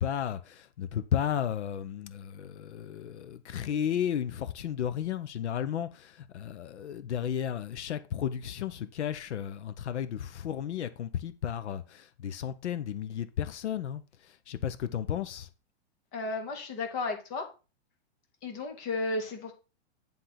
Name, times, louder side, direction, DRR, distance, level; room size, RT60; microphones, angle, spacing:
voice 1, 0.0-14.0 14.5-15.5, left 9 dB, 80° left, 0.9 m, -33 dB
voice 2, 16.1-17.5 18.4-19.5, left 3 dB, 10° left, 0.5 m, -33 dB
10.0 x 3.7 x 5.8 m
supercardioid pair, 175°, 34 cm